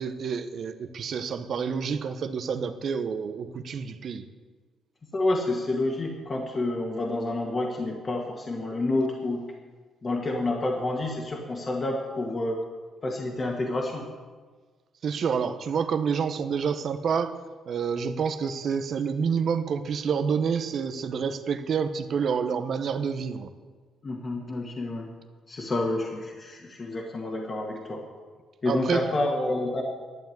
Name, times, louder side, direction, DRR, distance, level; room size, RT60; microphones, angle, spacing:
voice 1, 0.0-4.2 15.0-17.3 17.7-23.5 28.7-29.0, right 6 dB, 55° right, 10 dB, 0.9 m, -28 dB
voice 2, 5.1-9.4 10.0-12.6 13.0-14.0 24.0-25.1 25.5-28.0 28.6-29.8, left 2 dB, 35° left, 0 dB, 1.7 m, -29 dB
11.5 x 7.2 x 9.3 m, 1.5 s
cardioid pair, 90°, 0 cm